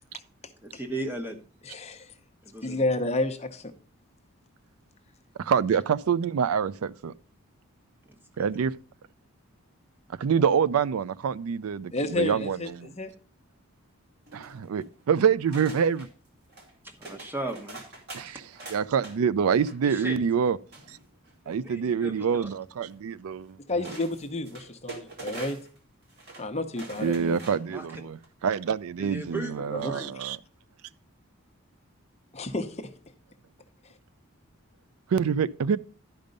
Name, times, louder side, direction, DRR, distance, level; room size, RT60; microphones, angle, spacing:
voice 1, 0.6-1.4 2.4-2.8 16.8-17.8 19.8-20.2 21.6-22.5 27.7-27.8 29.0-30.1, right 2 dB, 10° right, 1.1 m, -36 dB
voice 2, 1.7-2.1 2.6-3.7 11.9-12.7 13.0-13.1 23.7-25.6 26.4-27.4 29.7-29.9 32.3-32.9, left 2 dB, 30° left, 0.8 m, -30 dB
voice 3, 5.4-7.1 8.4-8.8 10.2-12.9 14.3-16.1 18.1-20.6 20.9-21.0 21.5-23.9 27.0-30.4 35.1-35.8, right 7 dB, 80° right, 0.4 m, -26 dB
sound 1, 14.3-14.9 15.5-16.1 16.5-16.7 17.0-19.1 19.5-19.9 20.7-21.5 22.9-23.0 23.8-25.8 26.1-26.5 26.7-27.7 28.1-28.3, right 3 dB, 45° right, 2.3 m, -44 dB
12.0 x 5.2 x 5.2 m
head